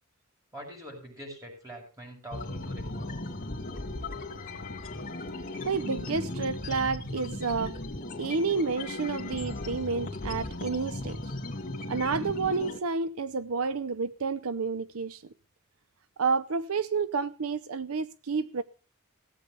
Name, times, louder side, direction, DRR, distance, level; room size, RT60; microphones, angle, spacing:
voice 1, 0.5-3.2, equal, 15° right, 7.1 m, -44 dB
sound 1, 2.3-12.8, left 2 dB, 40° left, 2.4 m, -37 dB
voice 2, 5.7-7.7 8.2-11.2 11.9-15.2 16.2-18.6, right 4 dB, 80° right, 0.7 m, -30 dB
17.5 x 8.5 x 5.4 m
head